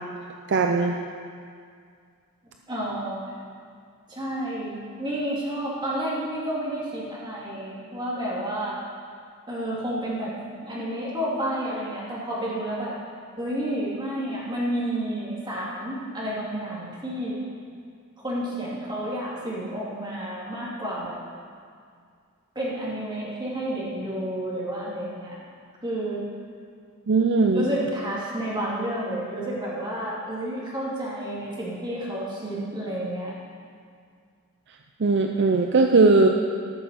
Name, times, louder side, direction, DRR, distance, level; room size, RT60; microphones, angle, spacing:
voice 1, 0.5-1.0 27.1-27.7 35.0-36.3, right 3 dB, 55° right, 3 dB, 0.6 m, -19 dB
voice 2, 2.7-3.2 4.1-8.8 9.5-12.9 13.4-17.4 18.2-21.2 22.5-25.4 25.8-26.2 27.5-33.3, right 1 dB, 20° right, -6 dB, 2.7 m, -30 dB
13.5 x 6.5 x 6.8 m, 2.2 s
head